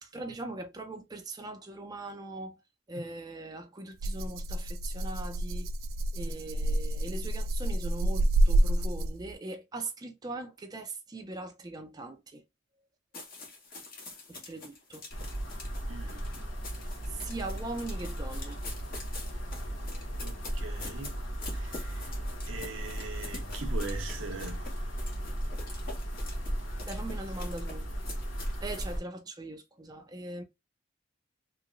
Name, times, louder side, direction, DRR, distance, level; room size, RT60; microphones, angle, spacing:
voice 1, 0.0-2.6 2.9-5.7 6.1-12.4 14.3-15.0 17.2-18.6 26.9-27.9 28.6-30.4, right 2 dB, 20° right, 0.5 m, -40 dB
Rattle (instrument), 4.0-9.3, right 1 dB, 90° right, 0.3 m, -28 dB
sound 1, 13.1-28.9, left 3 dB, 45° left, 1.2 m, -46 dB
sound 2, 15.1-29.0, equal, 90° left, 1.2 m, -36 dB
voice 2, 15.9-16.2 20.2-21.1 21.5-22.0 22.5-24.6, right 3 dB, 75° right, 0.7 m, -41 dB
3.1 x 2.9 x 2.4 m
head